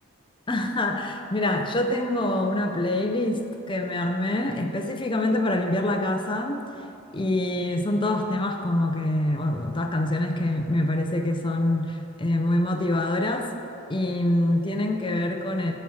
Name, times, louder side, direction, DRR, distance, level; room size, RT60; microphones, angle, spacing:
voice 1, 0.5-3.4 3.7-6.6 7.1-13.5 13.9-15.7, left 1 dB, 25° left, 4 dB, 0.6 m, -25 dB
12.5 x 4.4 x 7.2 m, 2.8 s
head